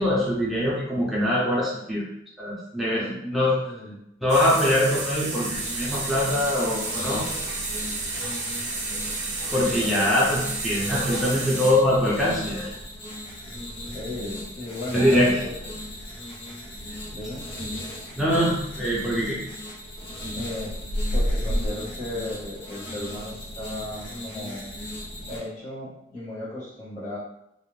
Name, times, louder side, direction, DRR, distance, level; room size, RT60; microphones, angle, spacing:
voice 1, 0.0-2.1 2.4-3.6 4.2-7.2 9.5-12.7 14.9-15.4 18.2-19.4, left 1 dB, ahead, -8 dB, 0.5 m, -23 dB
voice 2, 3.6-4.0 9.4-10.3 13.9-15.5 17.1-17.5 20.3-20.8 21.1-24.6 25.3-27.2, left 1 dB, 40° left, -11 dB, 0.9 m, -36 dB
sound 1, 4.3-11.7, right 3 dB, 40° right, 0.7 m, -31 dB
sound 2, 5.5-25.4, left 1 dB, 80° left, 0.9 m, -37 dB
sound 3, 15.6-17.1 17.4-21.7, equal, 85° right, 0.3 m, -29 dB
2.4 x 2.0 x 3.1 m, 0.82 s
head